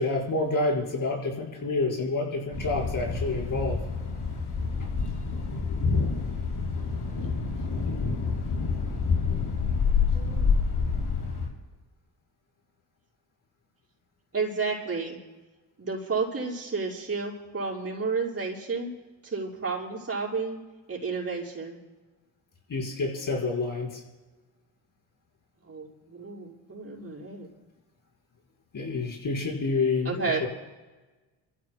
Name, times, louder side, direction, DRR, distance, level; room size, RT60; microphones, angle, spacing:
voice 1, 0.0-3.8 22.7-24.0 28.7-30.5, left 3 dB, 45° left, -2 dB, 4.7 m, -28 dB
Thunder, 2.5-11.5, left 5 dB, 65° left, 5.2 m, -27 dB
voice 2, 10.0-10.5 14.3-15.2 15.8-18.9 19.2-20.6 20.9-21.8 25.6-27.5 30.0-30.4, right 4 dB, 35° right, -5 dB, 5.5 m, -31 dB
30.0 x 15.0 x 2.2 m, 1.2 s
supercardioid pair, 55°, 43 cm